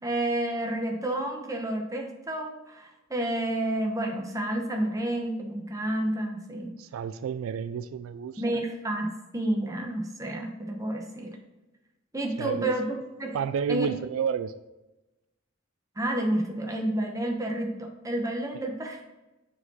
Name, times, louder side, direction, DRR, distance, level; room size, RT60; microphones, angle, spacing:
voice 1, 0.0-6.7 8.4-11.4 12.1-13.4 13.7-13.9 16.0-19.0, right 1 dB, 15° right, 2 dB, 1.0 m, -30 dB
voice 2, 6.8-8.4 12.4-12.7 13.3-14.5, right 7 dB, 80° right, 12 dB, 0.3 m, -30 dB
6.4 x 4.8 x 4.1 m, 1.0 s
head